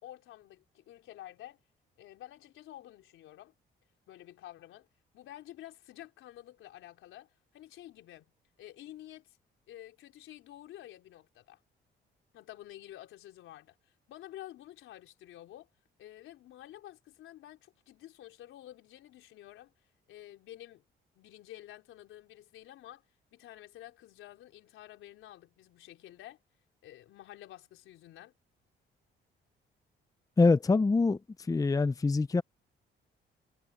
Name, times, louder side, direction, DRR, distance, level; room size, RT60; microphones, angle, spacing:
voice 1, 0.0-1.6 2.0-3.5 4.1-4.9 5.1-8.3 8.6-9.4 9.7-11.6 12.3-13.8 14.1-15.7 16.0-19.7 20.1-20.8 21.1-23.0 23.3-26.4 26.8-28.3, left 13 dB, 85° left, 4.3 m, -50 dB
voice 2, 30.4-31.2 31.5-32.4, left 3 dB, 15° left, 0.6 m, -24 dB
cardioid pair, 90°, 20 cm